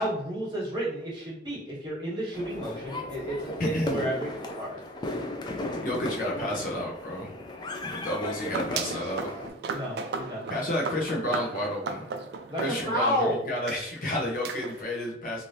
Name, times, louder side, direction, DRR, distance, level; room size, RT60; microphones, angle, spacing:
voice 1, 0.0-4.8 9.7-10.5 12.5-13.4, equal, 25° right, -7 dB, 1.3 m, -31 dB
sound 1, 2.3-9.5, left 2 dB, 25° left, 0.3 m, -36 dB
voice 2, 3.6-4.0 5.8-7.3 7.9-9.3 10.5-12.1 12.6-15.4, left 1 dB, 50° left, -3 dB, 0.7 m, -31 dB
sound 2, 8.4-13.2 13.7-13.8 14.4-14.8, right 4 dB, 65° right, 0.3 m, -36 dB
3.2 x 2.6 x 2.7 m, 0.74 s
head